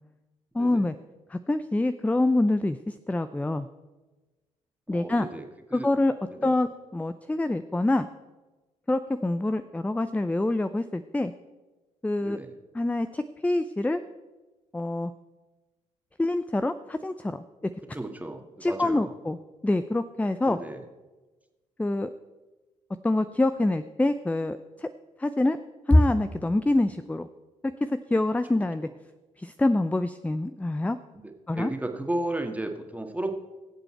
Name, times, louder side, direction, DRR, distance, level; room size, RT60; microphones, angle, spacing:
voice 1, 0.5-0.9 1.3-3.7 4.9-5.3 5.7-6.1 6.4-8.1 8.9-11.3 12.0-12.4 12.7-14.0 14.7-15.1 16.2-17.4 18.6-19.4 19.6-20.6 21.8-22.1 23.0-24.9 25.2-25.6 25.9-27.3 27.6-28.9 29.4-31.0 31.5-31.7, left 2 dB, 10° left, 11 dB, 0.5 m, -25 dB
voice 2, 4.9-5.9 6.3-6.5 12.2-12.5 17.9-19.1 20.5-20.8 28.5-28.6 31.1-33.3, right 1 dB, 10° right, 4 dB, 1.9 m, -34 dB
21.0 x 7.8 x 4.5 m, 1.2 s
hypercardioid pair, 45°, 16 cm